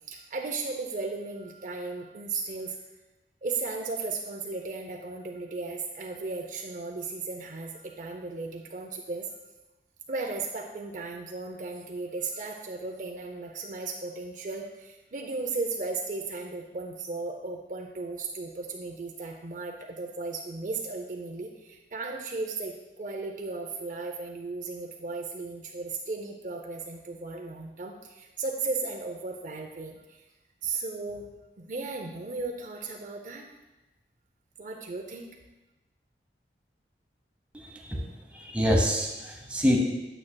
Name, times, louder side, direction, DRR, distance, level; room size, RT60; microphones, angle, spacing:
voice 1, 0.1-2.8 3.4-9.3 10.1-30.2 30.6-31.3 31.6-33.5 34.6-35.4, right 3 dB, 45° right, 2 dB, 0.5 m, -35 dB
voice 2, 37.5-39.8, equal, 5° right, -1 dB, 0.9 m, -27 dB
8.6 x 7.7 x 2.2 m, 1.0 s
head